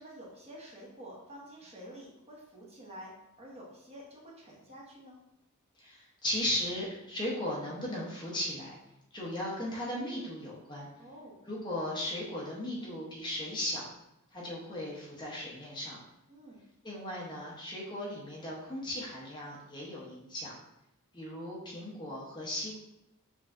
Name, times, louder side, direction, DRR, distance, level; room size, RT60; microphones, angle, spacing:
voice 1, 0.0-3.1 3.4-5.2 11.0-11.4 16.3-16.6, equal, 30° right, -4 dB, 1.1 m, -49 dB
voice 2, 5.8-8.7 9.1-10.9 11.4-13.8 14.3-16.0 16.8-20.5 21.1-22.8, left 1 dB, 20° left, -5 dB, 0.9 m, -37 dB
5.9 x 3.1 x 2.6 m, 0.88 s
head